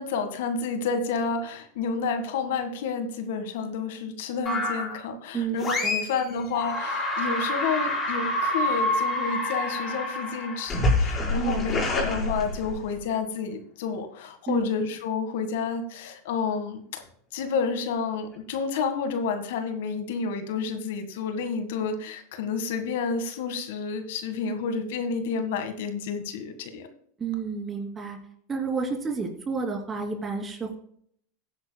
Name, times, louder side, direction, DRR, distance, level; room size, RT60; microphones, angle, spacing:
voice 1, 0.0-17.0 17.3-26.9, left 5 dB, 70° left, 7 dB, 1.8 m, -30 dB
sound 1, 4.5-5.0 5.6-6.2 6.5-13.0, left 1 dB, 25° left, 5.2 m, -27 dB
voice 2, 5.3-6.0 11.4-11.7 14.5-14.7 27.2-28.2 28.5-30.8, right 5 dB, 20° right, 1 dB, 3.1 m, -30 dB
16.5 x 10.0 x 2.3 m, 0.65 s
hypercardioid pair, 115°, 0 cm